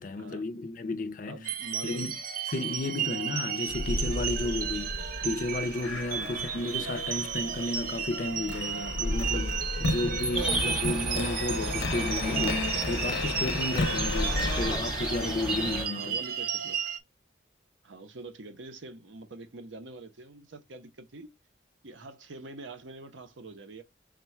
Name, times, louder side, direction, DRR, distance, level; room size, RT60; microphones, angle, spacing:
voice 1, 0.0-1.4 1.8-2.2 2.5-4.9 5.2-12.6 12.9-16.1, left 2 dB, 45° left, 0.4 m, -33 dB
voice 2, 1.2-2.1 2.7-3.1 6.1-6.4 14.0-14.1 15.9-16.8 17.8-21.3 21.8-23.8, right 2 dB, 85° right, 0.8 m, -45 dB
sound 1, 1.4-17.0, right 8 dB, 45° right, 0.5 m, -34 dB
sound 2, 3.7-14.8, left 2 dB, 85° left, 0.6 m, -34 dB
sound 3, 10.3-15.9, equal, 5° right, 0.8 m, -33 dB
3.7 x 2.2 x 4.3 m
head